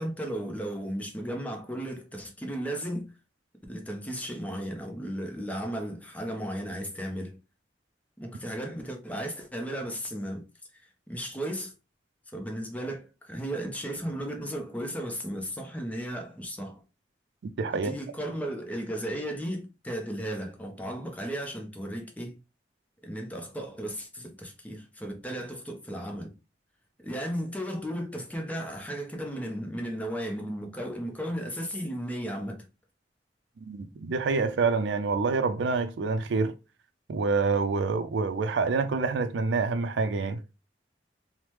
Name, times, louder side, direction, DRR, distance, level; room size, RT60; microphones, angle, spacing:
voice 1, 0.0-3.1 3.7-7.4 8.2-10.4 10.7-11.7 12.3-16.8 17.7-22.4 23.0-26.3 27.0-32.7, equal, 10° left, 0.6 m, -35 dB
voice 2, 17.4-17.9 33.6-36.5 37.1-40.4, right 4 dB, 85° right, 0.4 m, -27 dB
3.2 x 2.1 x 2.9 m
head